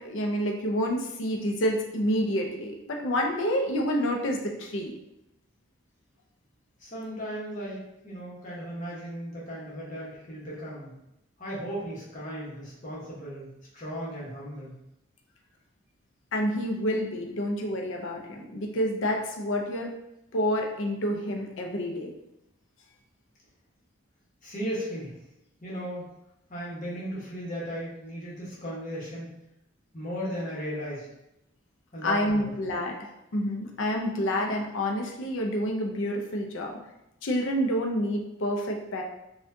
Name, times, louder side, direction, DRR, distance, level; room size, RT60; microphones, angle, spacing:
voice 1, 0.0-4.9 16.3-19.9 20.3-22.1 32.0-36.7 37.2-39.0, equal, 70° left, 1 dB, 0.6 m, -28 dB
voice 2, 6.8-10.9 11.4-14.7 24.4-25.2 25.6-26.1 26.5-29.3 29.9-31.1 31.9-32.5, equal, 40° left, -6 dB, 1.1 m, -36 dB
4.3 x 2.4 x 2.6 m, 0.86 s
head